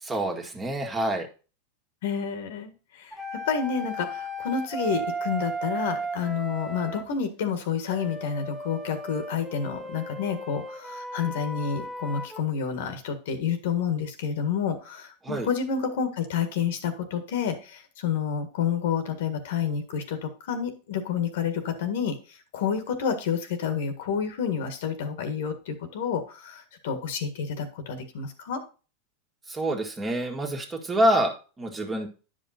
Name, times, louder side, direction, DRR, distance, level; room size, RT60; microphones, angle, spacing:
voice 1, 0.0-1.3 15.2-15.5 29.5-32.1, right 1 dB, 20° right, 2 dB, 1.8 m, -27 dB
voice 2, 2.0-28.6, left 7 dB, 70° left, 8 dB, 1.7 m, -29 dB
sound 1, 3.1-7.1 7.9-12.4, right 2 dB, ahead, 1.1 m, -35 dB
9.4 x 5.3 x 4.3 m, 0.34 s
hypercardioid pair, 115°, 0 cm